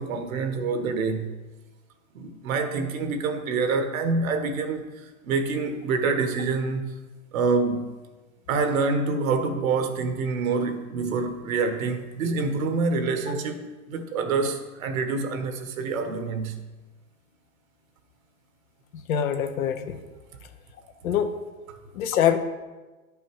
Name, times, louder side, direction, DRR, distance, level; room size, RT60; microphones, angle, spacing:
voice 1, 0.0-1.3 2.1-6.8 7.3-7.9 8.5-16.6 21.7-21.8, right 4 dB, 70° right, 7 dB, 1.4 m, -26 dB
voice 2, 18.9-20.0 21.0-21.3 21.9-22.4, left 9 dB, 75° left, 7 dB, 1.1 m, -24 dB
10.5 x 5.5 x 4.7 m, 1.2 s
hypercardioid pair, 110°, 42 cm